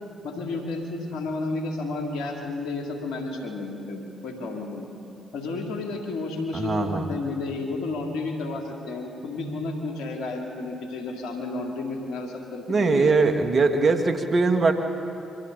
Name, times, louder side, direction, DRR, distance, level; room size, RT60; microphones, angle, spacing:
voice 1, 0.2-4.9 5.3-13.1, left 3 dB, 75° left, 1 dB, 2.9 m, -32 dB
voice 2, 6.5-7.1 12.7-14.7, right 3 dB, 50° right, 5 dB, 2.0 m, -21 dB
29.0 x 24.5 x 4.1 m, 2.7 s
hypercardioid pair, 45°, 0 cm